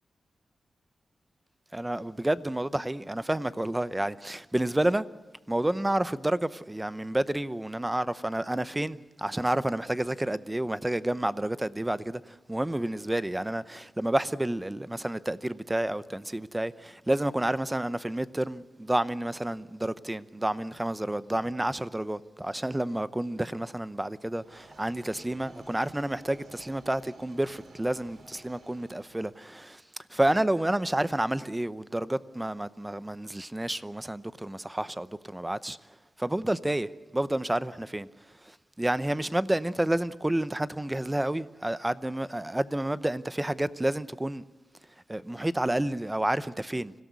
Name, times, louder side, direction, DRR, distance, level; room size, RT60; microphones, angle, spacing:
voice 1, 1.7-5.1 5.5-29.8 30.1-35.8 36.2-38.1 38.4-44.4 45.1-46.9, right 1 dB, 15° right, 0.7 m, -30 dB
sound 1, 24.4-29.5, right 3 dB, 65° right, 2.9 m, -54 dB
25.5 x 17.0 x 8.3 m
wide cardioid pair, 90°, 0 cm